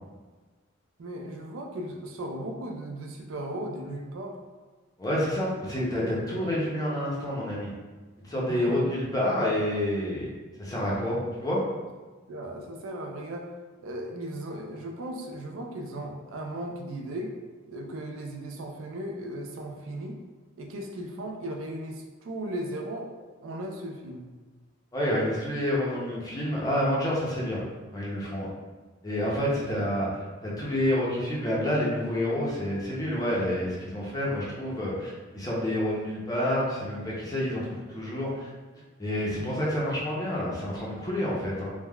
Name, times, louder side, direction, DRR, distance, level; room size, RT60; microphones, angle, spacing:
voice 1, 1.0-4.4 8.5-8.8 12.3-13.5 13.8-17.3 17.7-20.2 20.6-23.1 23.4-24.3, right 1 dB, 70° right, 2 dB, 0.4 m, -36 dB
voice 2, 5.0-7.7 8.2-10.3 10.6-11.6 24.9-27.6 27.9-28.5 29.0-37.6 37.9-38.5 39.0-41.7, left 1 dB, 20° left, -5 dB, 0.6 m, -28 dB
3.4 x 2.1 x 2.2 m, 1.3 s
head